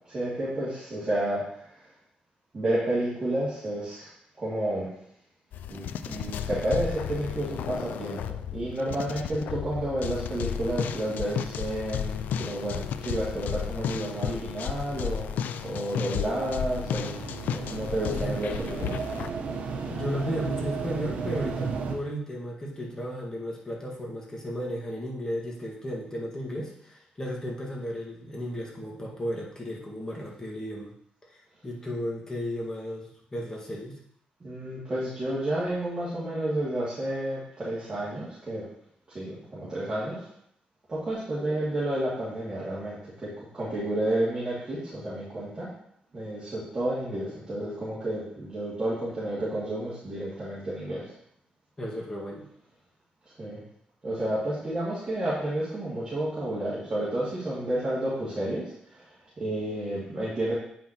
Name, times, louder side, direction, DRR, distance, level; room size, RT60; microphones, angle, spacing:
voice 1, 0.1-1.8 2.5-4.1 4.4-4.9 5.7-17.1 17.5-19.0 34.4-38.7 39.1-40.3 40.9-45.7 46.1-51.1 53.4-53.6 54.0-60.5, right 1 dB, 30° right, -10 dB, 2.3 m, -31 dB
sound 1, 5.5-19.3, left 8 dB, 85° left, 0.3 m, -33 dB
sound 2, 16.3-22.0, right 5 dB, 75° right, 1.0 m, -34 dB
voice 2, 18.0-18.4 19.9-30.9 31.2-34.0 51.8-52.5, equal, 20° left, -2 dB, 1.7 m, -34 dB
8.2 x 5.7 x 3.0 m, 0.70 s
cardioid pair, 115°, 3 cm